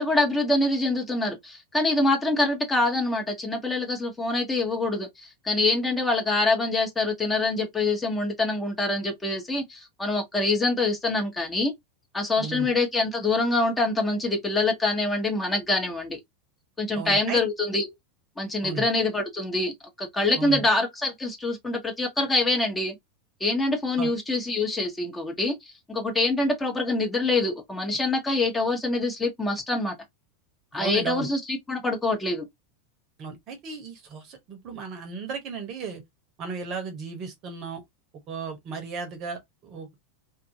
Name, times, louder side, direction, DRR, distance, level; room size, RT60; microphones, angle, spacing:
voice 1, 0.0-11.7 12.1-16.2 16.8-17.9 18.4-19.7 20.0-23.0 23.4-25.6 25.9-29.9 30.7-32.5, left 2 dB, 15° left, 0.9 m, -25 dB
voice 2, 12.4-12.7 16.9-17.4 18.6-18.9 20.4-20.6 24.0-24.1 30.8-31.3 33.2-36.0 36.4-37.8 38.3-40.0, right 5 dB, 40° right, 0.9 m, -35 dB
2.5 x 2.5 x 2.6 m
figure-of-eight pair, 85°, 0 cm